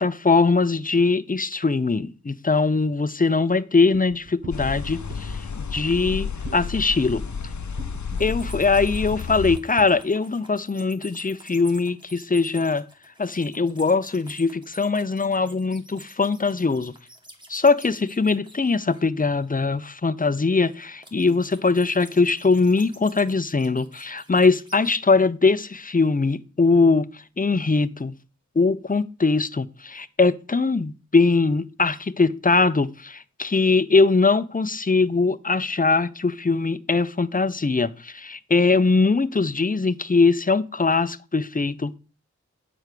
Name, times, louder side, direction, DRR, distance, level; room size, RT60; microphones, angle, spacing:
voice 1, 0.0-7.2 8.2-12.9 13.2-16.9 17.5-27.1 27.4-28.1 28.6-42.0, left 4 dB, 30° left, 0.6 m, -21 dB
sound 1, 3.9-10.0, right 4 dB, 55° right, 1.0 m, -40 dB
sound 2, 4.5-9.6, left 6 dB, 70° left, 0.7 m, -31 dB
sound 3, 8.1-19.5 21.0-25.0, equal, 15° right, 2.0 m, -48 dB
8.9 x 4.7 x 6.7 m
wide cardioid pair, 45°, 30 cm